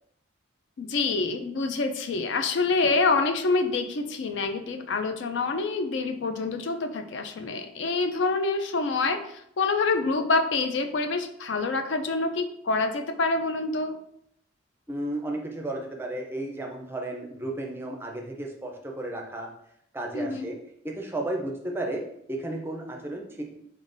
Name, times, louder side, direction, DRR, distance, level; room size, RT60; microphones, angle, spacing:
voice 1, 0.8-14.0 20.1-20.5, left 3 dB, 65° left, 7 dB, 0.4 m, -26 dB
voice 2, 14.9-19.5 19.9-20.6 20.8-22.0 22.3-23.6, right 1 dB, 10° right, 1 dB, 0.4 m, -33 dB
4.0 x 3.7 x 2.5 m, 0.72 s
head